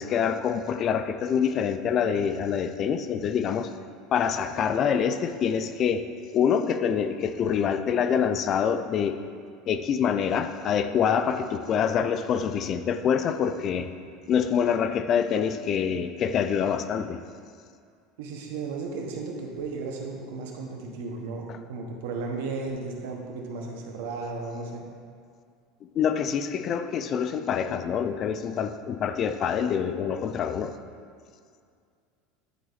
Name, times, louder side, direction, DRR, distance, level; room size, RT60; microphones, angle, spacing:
voice 1, 0.0-3.7 4.1-6.1 6.3-9.2 9.7-13.9 14.3-17.2 26.0-30.7, left 7 dB, 35° left, 10 dB, 0.3 m, -26 dB
voice 2, 18.2-24.8, right 4 dB, 85° right, 1 dB, 1.1 m, -34 dB
10.0 x 4.1 x 4.0 m, 2.2 s
supercardioid pair, 155°, 0 cm